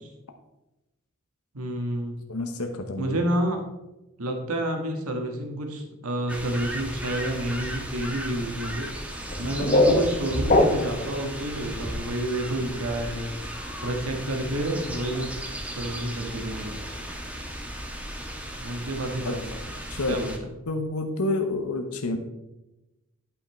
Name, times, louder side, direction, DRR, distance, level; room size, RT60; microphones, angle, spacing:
voice 1, 1.5-2.3 3.0-3.6 4.2-8.9 9.4-13.3 13.8-15.3 15.7-16.8 18.6-19.6 20.1-20.6, right 1 dB, 80° right, 3 dB, 1.5 m, -29 dB
voice 2, 2.3-3.2 19.2-19.3 19.9-20.2 20.7-22.2, left 2 dB, 85° left, 5 dB, 0.9 m, -28 dB
sound 1, 6.3-20.4, equal, 5° right, 1.1 m, -35 dB
sound 2, 9.2-11.1, left 1 dB, 40° left, 1.0 m, -22 dB
11.5 x 5.7 x 4.3 m, 0.99 s
head